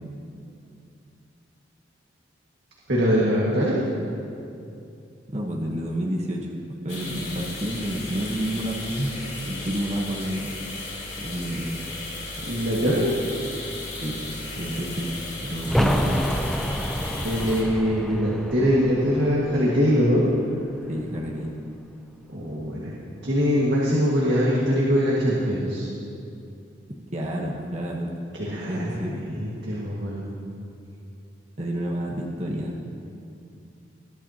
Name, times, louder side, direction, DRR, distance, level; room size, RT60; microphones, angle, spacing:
voice 1, 2.9-3.8 12.5-13.1 17.2-20.3 22.3-23.0 23.2-25.8 28.3-30.3, equal, 60° right, -6 dB, 1.8 m, -23 dB
voice 2, 5.3-6.5 6.8-9.2 9.4-10.5 11.2-11.7 14.0-14.3 14.6-15.1 15.5-16.3 20.9-21.6 27.1-28.1 28.7-29.2 31.6-32.8, equal, 35° right, -2 dB, 1.1 m, -29 dB
sound 1, 6.9-17.6, left 2 dB, 35° left, 2.6 m, -35 dB
sound 2, 15.6-21.2 21.5-21.6, equal, ahead, 0.5 m, -29 dB
21.0 x 12.0 x 2.9 m, 2.6 s
head